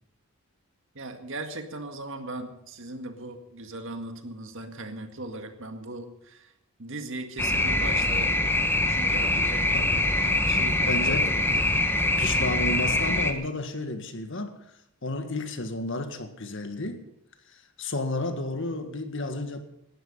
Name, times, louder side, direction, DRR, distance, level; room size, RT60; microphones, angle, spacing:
voice 1, 0.9-6.5 6.8-8.4 8.9-11.2, right 2 dB, 60° right, 2.0 m, -38 dB
sound 1, 7.4-13.3, left 2 dB, 10° left, 1.2 m, -24 dB
voice 2, 10.4-11.8 12.2-14.6 15.0-17.0 17.8-19.6, left 2 dB, 55° left, 1.8 m, -32 dB
18.0 x 12.0 x 5.5 m
head